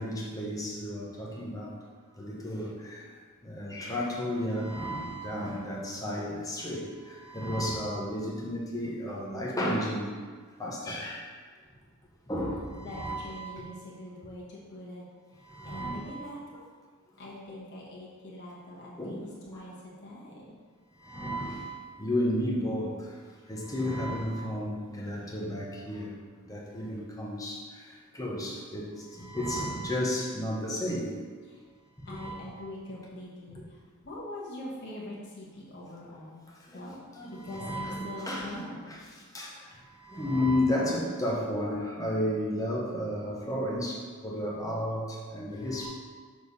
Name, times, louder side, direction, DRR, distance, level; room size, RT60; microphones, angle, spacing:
voice 1, 0.0-1.7 2.2-2.7 3.6-6.8 7.3-10.1 10.6-11.2 12.3-12.6 12.8-13.4 15.5-16.0 19.0-19.2 21.1-21.6 22.0-22.9 23.5-26.1 26.5-27.5 28.2-28.9 29.3-31.1 32.1-32.3 37.2-38.4 39.3-39.5 40.1-43.9 44.2-45.0 45.3-45.9, left 1 dB, 15° left, -4 dB, 1.1 m, -32 dB
voice 2, 12.8-15.0 15.6-16.6 17.2-20.6 31.5-31.6 32.1-33.8 34.0-36.4 36.7-36.9 37.3-38.9, left 1 dB, 55° left, -6 dB, 1.3 m, -43 dB
6.4 x 3.3 x 5.4 m, 1.5 s
head